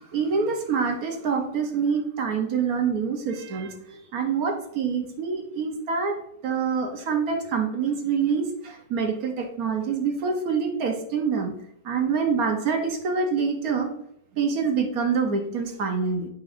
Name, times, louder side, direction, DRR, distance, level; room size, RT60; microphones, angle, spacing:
voice 1, 0.1-6.2 6.4-11.5 11.8-13.9 14.4-16.3, right 5 dB, 60° right, 4 dB, 1.2 m, -26 dB
8.8 x 5.3 x 2.5 m, 0.74 s
omnidirectional pair, 1.9 m